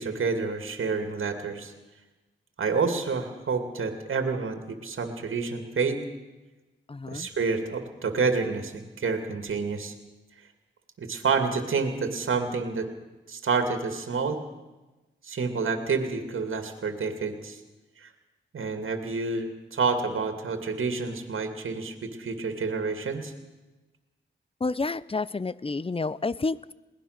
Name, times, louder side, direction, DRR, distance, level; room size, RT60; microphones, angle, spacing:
voice 1, 0.0-1.7 2.6-6.0 7.1-9.9 11.0-12.9 13.3-14.4 15.2-17.6 18.0-18.1 18.5-23.3, right 4 dB, 85° right, 6 dB, 2.3 m, -28 dB
voice 2, 6.9-7.3 24.6-26.7, left 3 dB, 25° left, 19 dB, 0.6 m, -30 dB
21.5 x 18.5 x 6.6 m, 1.1 s
cardioid pair, 65°, 20 cm